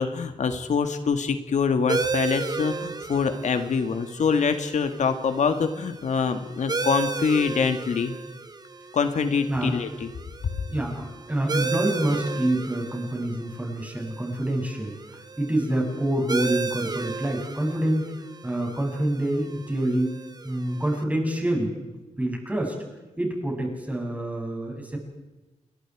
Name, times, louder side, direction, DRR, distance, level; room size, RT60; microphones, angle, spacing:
voice 1, 0.0-8.1 8.9-10.1 10.4-10.5, left 5 dB, 75° left, 8 dB, 1.8 m, -25 dB
sound 1, 1.9-21.0, right 4 dB, 30° right, 1.4 m, -34 dB
voice 2, 10.7-18.1 18.4-20.2 20.4-21.9 22.2-22.8 23.2-25.0, right 1 dB, 10° right, 0 dB, 7.6 m, -27 dB
29.5 x 22.5 x 4.9 m, 1.1 s
wide cardioid pair, 110°, 12 cm